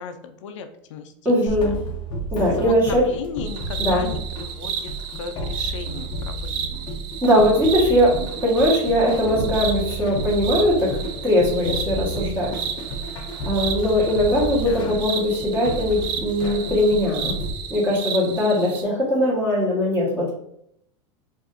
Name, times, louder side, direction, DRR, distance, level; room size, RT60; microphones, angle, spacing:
voice 1, 0.0-1.1 2.6-4.2 4.6-4.9 5.2-6.9 14.7-15.0, left 7 dB, 90° left, 8 dB, 0.5 m, -35 dB
voice 2, 1.2-1.8 2.3-3.1 3.8-4.0 7.2-10.9 11.2-12.5 13.4-17.3 17.7-20.3, equal, 15° right, -6 dB, 1.4 m, -20 dB
sound 1, 1.5-17.5, right 2 dB, 30° left, 0.6 m, -32 dB
sound 2, 3.5-18.8, right 8 dB, 60° right, 0.5 m, -33 dB
4.8 x 2.6 x 2.5 m, 0.74 s
supercardioid pair, 155°, 15 cm